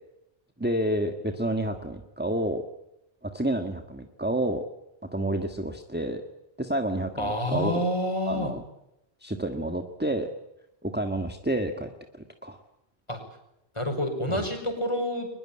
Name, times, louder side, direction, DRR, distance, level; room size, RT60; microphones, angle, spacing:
voice 1, 0.6-2.6 3.2-4.6 5.1-6.2 6.6-7.8 8.3-8.6 9.2-10.3 10.8-12.6 14.3-14.5, right 1 dB, 10° right, 5 dB, 1.6 m, -29 dB
voice 2, 7.2-8.5 13.1-13.2 13.7-15.3, equal, 30° left, 5 dB, 5.6 m, -28 dB
22.5 x 21.0 x 8.7 m, 0.86 s
omnidirectional pair, 1.1 m